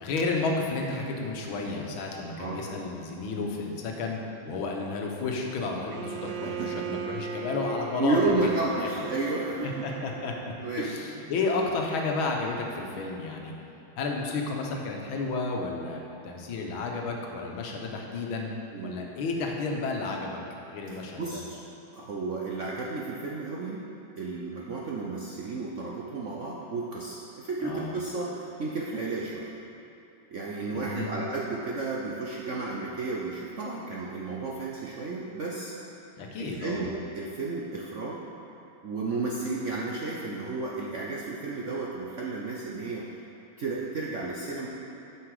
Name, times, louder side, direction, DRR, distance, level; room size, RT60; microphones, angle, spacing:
voice 1, 0.0-4.2 4.5-8.2 8.8-8.9 9.6-13.5 14.0-18.5 18.8-20.4 20.7-21.4 27.6-27.9 30.7-31.1 36.2-36.9, left 3 dB, 90° left, 1 dB, 1.8 m, -32 dB
Bowed string instrument, 5.9-10.6, right 6 dB, 90° right, 1.4 m, -37 dB
voice 2, 6.4-7.0 8.0-9.9 10.6-10.9 18.7-19.0 20.9-21.6 21.9-23.9 24.2-29.5 30.3-35.7 36.4-38.2 38.8-43.1 43.6-44.7, right 3 dB, 65° right, -4 dB, 0.7 m, -32 dB
9.6 x 6.0 x 4.8 m, 2.9 s
omnidirectional pair, 2.2 m